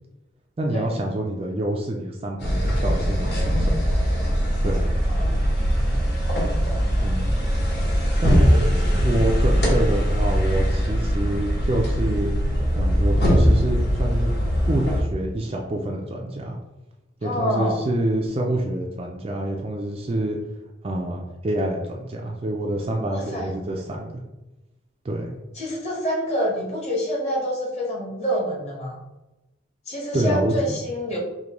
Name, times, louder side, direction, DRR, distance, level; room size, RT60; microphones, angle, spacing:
voice 1, 0.6-3.7 4.6-4.9 7.0-7.4 8.1-8.7 9.0-12.3 12.7-14.3 14.7-16.6 17.2-20.4 20.8-24.1 25.0-25.3 30.1-30.8, right 1 dB, 30° right, 1 dB, 0.3 m, -27 dB
sound 1, 2.4-15.0, equal, 55° left, 1.1 m, -21 dB
voice 2, 5.0-5.4 6.6-7.2 8.3-9.3 17.2-17.8 23.1-23.5 25.5-29.0 29.9-31.2, equal, 35° left, -3 dB, 1.0 m, -28 dB
5.0 x 2.2 x 2.9 m, 1.0 s
head